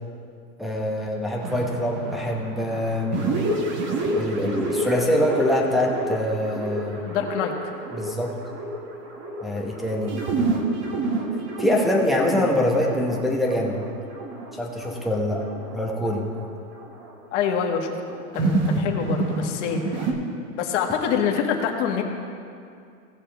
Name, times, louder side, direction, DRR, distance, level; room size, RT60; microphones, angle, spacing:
voice 1, 0.6-3.2 4.1-7.0 7.9-8.4 9.4-10.2 11.6-13.8 14.5-15.4 15.7-16.2, left 1 dB, ahead, -1 dB, 1.0 m, -24 dB
sound 1, 1.4-17.7 18.1-20.1, right 2 dB, 30° right, 1.1 m, -29 dB
voice 2, 7.0-7.5 17.3-20.0 20.5-22.0, left 7 dB, 60° left, 2 dB, 1.6 m, -26 dB
17.5 x 6.8 x 3.5 m, 2.4 s
supercardioid pair, 155°, 41 cm